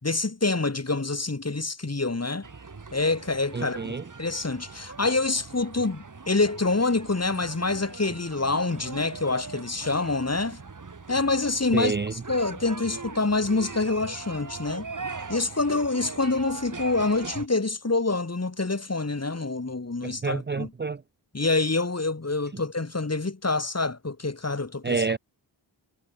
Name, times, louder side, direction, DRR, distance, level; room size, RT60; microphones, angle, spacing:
voice 1, 0.0-2.5 2.9-3.9 4.2-10.6 11.1-14.9 15.3-20.7 21.3-25.0, left 3 dB, 35° left, 3.4 m, -26 dB
sound 1, 2.4-17.5, right 4 dB, 45° right, 2.1 m, -41 dB
voice 2, 3.5-4.0 11.7-12.1 20.0-21.0 24.8-25.2, right 4 dB, 25° right, 0.6 m, -28 dB
cardioid pair, 55°, 44 cm